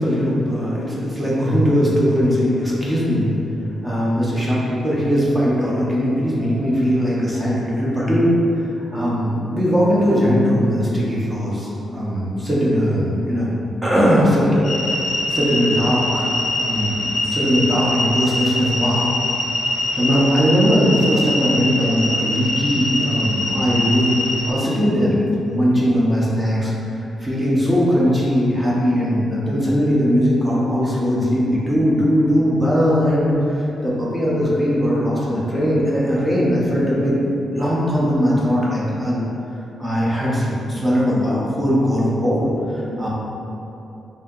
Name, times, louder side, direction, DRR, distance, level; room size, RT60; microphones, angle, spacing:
voice 1, 0.0-3.3 3.8-8.3 8.6-13.5 13.8-14.6 14.8-15.0 15.3-16.3 16.6-19.1 19.9-37.2 37.5-39.2 39.5-43.1, equal, 10° right, -7 dB, 0.5 m, -19 dB
sound 1, 14.6-24.5, left 2 dB, 75° left, 0.5 m, -23 dB
3.4 x 2.7 x 3.6 m, 2.9 s
wide cardioid pair, 180°, 0 cm